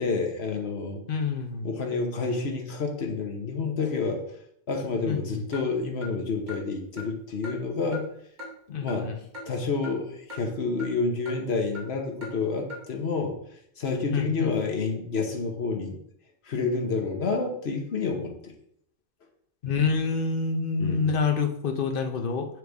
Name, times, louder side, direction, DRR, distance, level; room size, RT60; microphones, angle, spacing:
voice 1, 0.0-1.0 1.6-4.2 4.7-8.1 8.7-9.1 9.5-13.4 13.8-16.0 16.4-18.5 20.8-21.1, left 4 dB, 75° left, 3 dB, 1.3 m, -29 dB
voice 2, 1.1-1.7 5.1-5.4 8.7-9.2 14.1-14.5 19.6-22.5, left 5 dB, 60° left, 4 dB, 1.0 m, -27 dB
Clock, 5.5-5.6 6.0-6.1 6.5-6.6 7.0-7.1 7.4-7.6 7.9-8.0 8.4-8.5 8.9-9.0 9.3-9.5 9.8-9.9 10.3-10.4 10.8-10.9 11.3-11.4 11.7-11.9 12.2-12.3 12.7-12.8, left 2 dB, 45° right, 1.3 m, -39 dB
6.5 x 4.7 x 3.5 m, 0.71 s
omnidirectional pair, 1.1 m